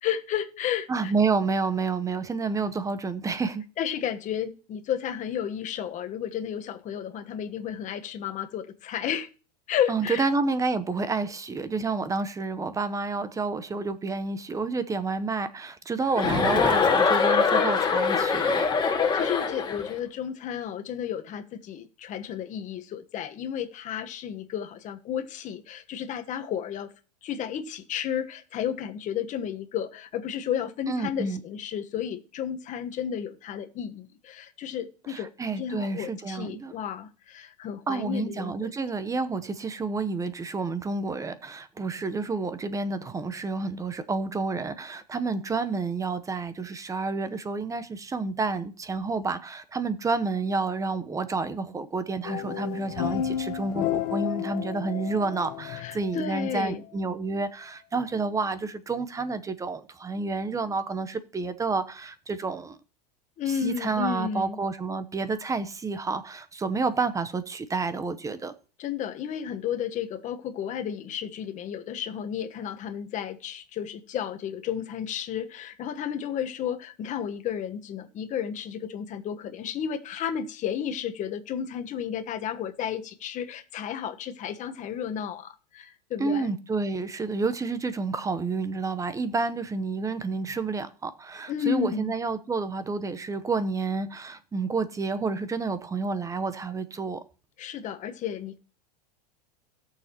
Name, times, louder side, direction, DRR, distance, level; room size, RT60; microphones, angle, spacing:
voice 1, 0.0-1.1 3.8-9.3 9.7-10.3 19.1-26.9 27.2-38.7 55.8-56.8 63.4-64.6 68.8-86.5 91.5-92.1 97.6-98.6, left 9 dB, 35° left, 1.3 m, -32 dB
voice 2, 0.9-3.6 9.9-18.7 30.9-31.4 35.1-36.7 37.9-62.8 63.5-68.5 86.2-97.2, right 4 dB, 15° right, 0.9 m, -29 dB
Chuckle chortle, 16.2-19.9, left 5 dB, 20° left, 2.2 m, -23 dB
sound 1, 52.2-56.5, left 10 dB, 55° left, 1.2 m, -32 dB
17.5 x 6.7 x 3.0 m
hypercardioid pair, 110°, 21 cm